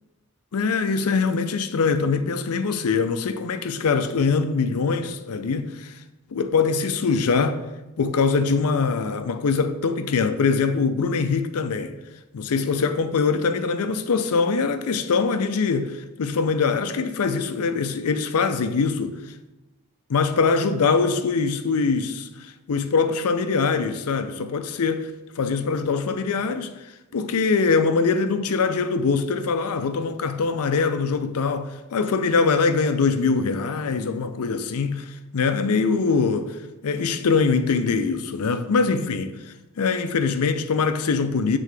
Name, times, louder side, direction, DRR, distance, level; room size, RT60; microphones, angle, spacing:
voice 1, 0.5-6.0 6.3-7.6 8.0-12.0 12.3-19.2 20.1-25.1 25.4-41.6, left 4 dB, 80° left, 0.5 m, -23 dB
8.2 x 3.7 x 3.4 m
head